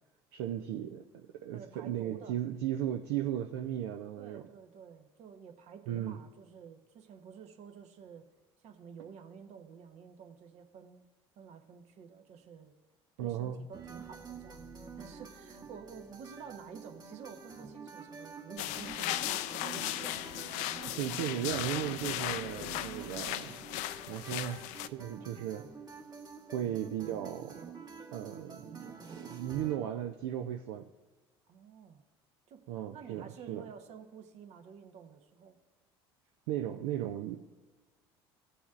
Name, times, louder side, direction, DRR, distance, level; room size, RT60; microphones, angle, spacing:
voice 1, 0.3-4.4 5.9-6.2 13.2-13.6 20.9-23.5 24.1-24.6 24.9-25.7 26.5-27.6 28.1-30.9 32.7-33.6 36.5-37.4, right 11 dB, 75° right, 4 dB, 0.5 m, -36 dB
voice 2, 1.5-2.4 4.1-8.3 8.6-11.1 11.4-12.7 13.2-21.0 21.6-21.7 22.3-22.5 25.1-25.5 31.5-32.0 32.5-32.6 32.9-35.6, right 7 dB, 55° right, 6 dB, 1.1 m, -51 dB
sound 1, 13.7-29.8, right 5 dB, 30° right, 1.3 m, -48 dB
sound 2, 18.6-24.9, left 14 dB, 65° left, 0.4 m, -37 dB
17.0 x 7.0 x 2.5 m, 1.2 s
hypercardioid pair, 70°, 13 cm